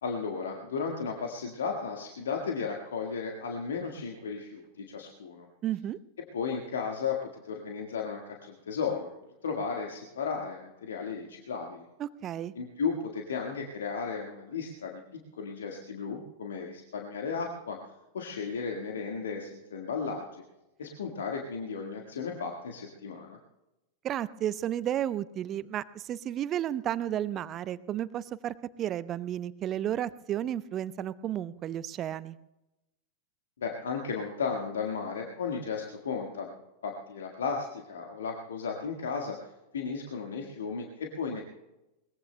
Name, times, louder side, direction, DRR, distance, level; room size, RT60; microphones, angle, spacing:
voice 1, 0.0-5.5 6.3-9.1 9.4-11.8 12.5-17.8 18.1-20.4 20.8-23.4 33.6-36.5 36.8-39.4 39.7-41.4, left 5 dB, 65° left, 1 dB, 1.6 m, -34 dB
voice 2, 5.6-6.0 12.0-12.5 24.0-32.4, right 11 dB, 30° right, 18 dB, 0.6 m, -32 dB
22.5 x 21.0 x 2.2 m, 0.95 s
figure-of-eight pair, 90°, 0 cm